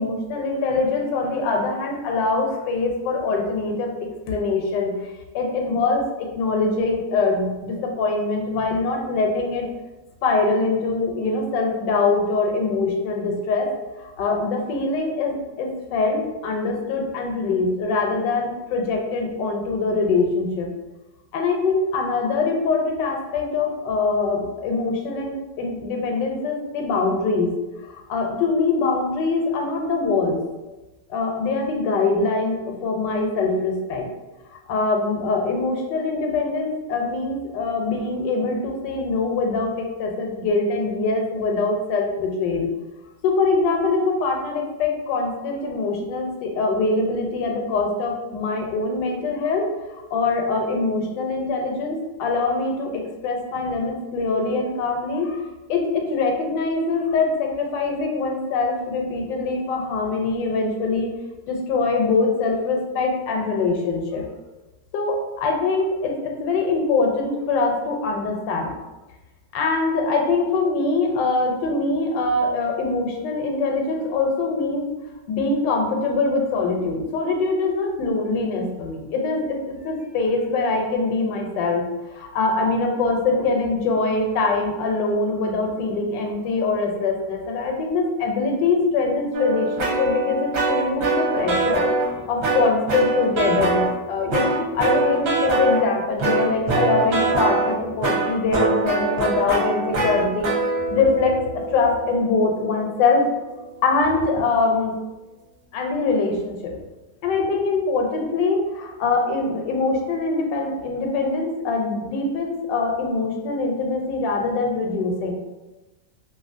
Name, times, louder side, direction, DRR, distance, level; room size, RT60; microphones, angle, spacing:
voice 1, 0.0-3.9 4.3-5.0 5.3-9.7 10.2-13.7 14.2-20.7 21.3-27.5 27.8-30.4 31.1-34.1 34.7-42.7 43.2-55.4 55.7-61.1 61.5-64.2 64.9-68.8 69.5-74.9 75.3-91.9 92.3-100.5 100.9-103.3 103.8-104.9 105.7-106.7 107.2-115.3, left 3 dB, 85° left, 1 dB, 1.2 m, -23 dB
sound 1, 89.3-92.1 92.4-93.9 94.3-95.8 96.2-103.2, right 3 dB, 60° right, 1.0 m, -23 dB
2.7 x 2.6 x 2.5 m, 1.1 s
omnidirectional pair, 1.9 m